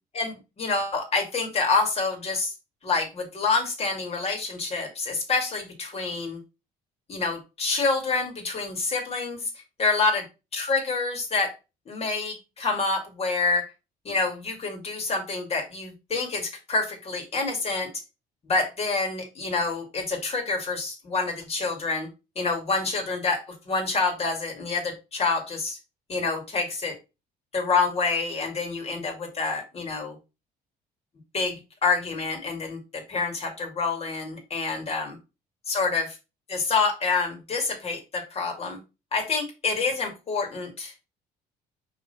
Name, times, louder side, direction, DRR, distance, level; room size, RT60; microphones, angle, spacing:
voice 1, 0.1-2.5 2.8-6.4 7.1-9.5 9.8-10.2 10.5-11.5 11.9-13.7 14.0-17.9 18.4-22.1 22.4-25.8 26.1-26.9 27.5-30.2 31.3-35.2 35.7-36.2 36.5-38.8 39.1-40.9, left 4 dB, 35° left, 1 dB, 2.5 m, -27 dB
5.7 x 3.9 x 4.3 m, 0.27 s
cardioid pair, 110°, 17 cm